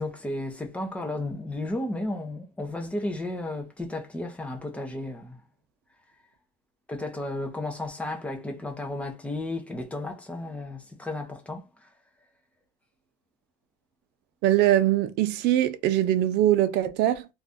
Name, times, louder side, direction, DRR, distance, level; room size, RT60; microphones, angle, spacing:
voice 1, 0.0-5.4 6.9-11.9, left 2 dB, 5° left, 0.6 m, -33 dB
voice 2, 14.4-17.3, right 13 dB, 70° right, 0.5 m, -22 dB
2.6 x 2.3 x 3.4 m
cardioid pair, 145°, 18 cm